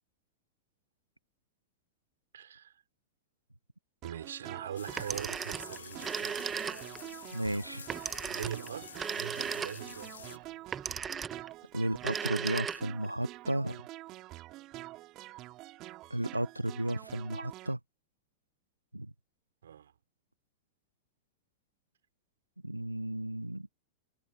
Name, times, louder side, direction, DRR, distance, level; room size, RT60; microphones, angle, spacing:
voice 1, 2.3-2.8 4.0-6.9 8.2-10.6 19.6-19.9, right 9 dB, 65° right, 5.8 m, -42 dB
sound 1, 4.0-17.7, right 17 dB, 35° right, 4.7 m, -47 dB
sound 2, 4.8-10.4, left 8 dB, 70° left, 3.0 m, -49 dB
Telephone, 4.9-7.1 7.9-10.0 10.7-11.5 11.9-13.1, right 7 dB, 20° right, 1.7 m, -36 dB
voice 2, 7.3-7.8 11.7-13.8 16.1-17.8 18.9-19.1 22.6-23.7, right 1 dB, 85° right, 0.6 m, -33 dB
figure-of-eight pair, 90°, 0 cm